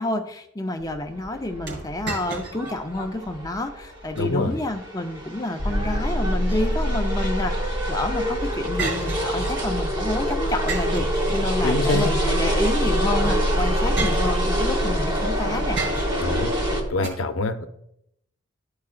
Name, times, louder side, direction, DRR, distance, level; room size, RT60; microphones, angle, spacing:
voice 1, 0.0-15.8, left 1 dB, 20° left, 5 dB, 0.5 m, -29 dB
sound 1, 0.8-16.8, equal, 25° right, 1.1 m, -28 dB
sound 2, 1.7-2.8 3.2-3.3 3.9-4.3 6.2-7.1 8.8-9.8 10.7-11.8 13.0-13.1 14.0-14.8 15.8-16.4 17.0-17.1, right 4 dB, 65° right, 2.8 m, -33 dB
voice 2, 4.2-4.6 11.6-12.1 16.2-16.5 16.9-17.7, left 2 dB, 85° left, 8 dB, 0.6 m, -25 dB
sound 3, 5.6-16.9, equal, 85° right, 2.3 m, -26 dB
12.5 x 4.7 x 2.4 m, 0.77 s
head